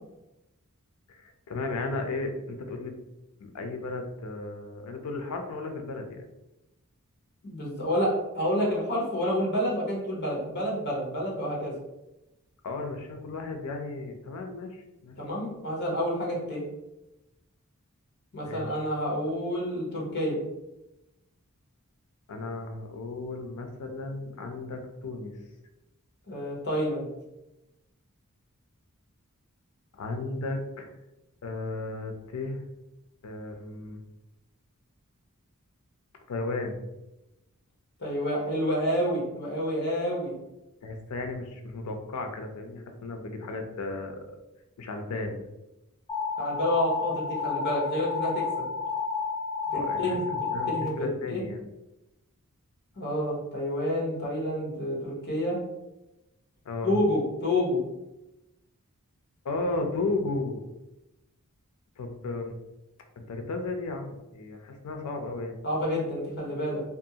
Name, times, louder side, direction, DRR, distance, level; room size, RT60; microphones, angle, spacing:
voice 1, 1.1-2.9 3.4-6.3 12.6-15.2 18.4-18.8 22.3-25.4 29.9-30.9 31.4-32.6 33.2-34.0 36.3-36.8 40.8-44.2 44.8-45.4 49.7-51.6 56.7-57.0 59.4-60.6 62.0-62.5 63.2-65.6, left 3 dB, 85° left, 5 dB, 0.4 m, -34 dB
voice 2, 7.4-11.7 15.2-16.6 18.3-20.4 26.3-27.1 38.0-40.4 46.4-48.6 49.7-50.4 50.7-51.4 53.0-55.6 56.8-57.8 65.6-66.8, equal, 50° left, -3 dB, 0.9 m, -29 dB
sound 1, 46.1-50.9, left 5 dB, 20° left, 0.4 m, -31 dB
2.5 x 2.3 x 2.7 m, 0.95 s
head